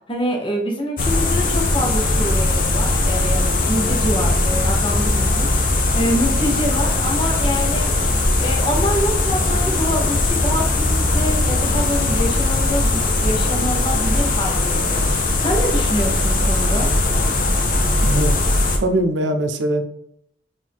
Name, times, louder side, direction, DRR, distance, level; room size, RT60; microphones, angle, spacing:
voice 1, 0.1-7.9 8.4-16.9, equal, 30° left, 0 dB, 1.0 m, -26 dB
sound 1, 1.0-18.8, left 2 dB, 50° left, 0.7 m, -19 dB
voice 2, 18.0-18.3 18.8-19.8, right 1 dB, 80° right, 7 dB, 0.5 m, -21 dB
4.6 x 2.7 x 3.5 m, 0.72 s
head